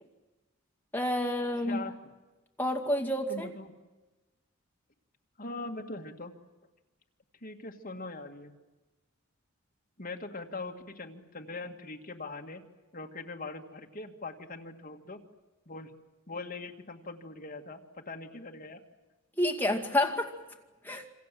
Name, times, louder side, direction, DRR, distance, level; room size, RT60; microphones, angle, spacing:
voice 1, 0.9-1.8 2.6-3.5 19.4-20.3 20.8-21.0, left 1 dB, 10° left, 2 dB, 2.2 m, -29 dB
voice 2, 1.6-2.0 3.3-3.7 5.4-6.3 7.4-8.5 10.0-12.6 12.9-15.2 15.7-15.9 16.3-18.8, left 3 dB, 40° left, 3 dB, 2.1 m, -41 dB
27.5 x 26.5 x 7.7 m, 1.1 s
head